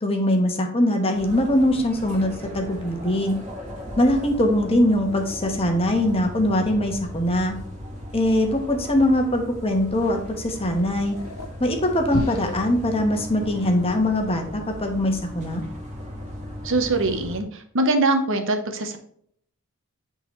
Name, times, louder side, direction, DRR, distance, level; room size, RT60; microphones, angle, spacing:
voice 1, 0.0-3.4 4.0-7.5 8.1-11.2 11.6-15.6, left 1 dB, 25° left, 4 dB, 1.1 m, -22 dB
sound 1, 1.1-17.4, equal, 30° right, 1.4 m, -37 dB
sound 2, 8.1-14.0, left 1 dB, 65° left, 0.8 m, -36 dB
voice 2, 16.6-19.0, right 2 dB, 60° right, 6 dB, 0.9 m, -23 dB
8.8 x 3.9 x 3.1 m, 0.63 s
head